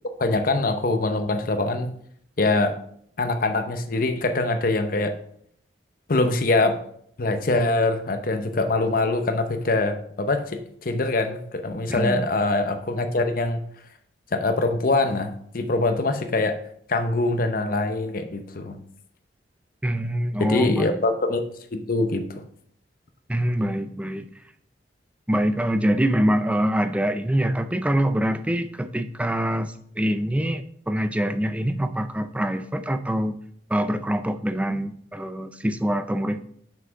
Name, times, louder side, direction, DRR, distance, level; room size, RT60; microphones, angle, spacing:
voice 1, 0.2-1.9 2.4-2.7 3.2-5.1 6.1-6.8 7.2-13.6 14.3-16.5 16.9-18.8 20.4-21.4 21.7-22.2, left 2 dB, 50° left, 8 dB, 0.7 m, -23 dB
voice 2, 11.9-12.3 19.8-21.0 23.3-24.3 25.3-33.3 33.7-36.4, equal, 5° right, 11 dB, 0.4 m, -25 dB
6.1 x 5.8 x 4.6 m, 0.66 s
head